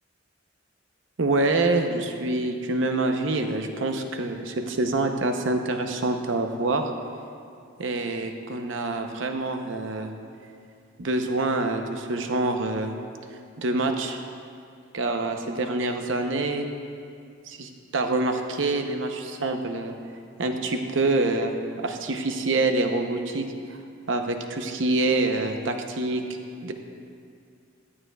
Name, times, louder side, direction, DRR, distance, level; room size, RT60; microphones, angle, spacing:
voice 1, 1.2-6.8 7.8-10.1 11.0-12.9 13.6-14.2 14.9-16.7 17.5-19.9 20.4-21.5 21.8-23.8 24.1-26.2 26.6-26.7, right 2 dB, 70° right, 5 dB, 0.7 m, -26 dB
14.0 x 8.7 x 2.3 m, 2.4 s
head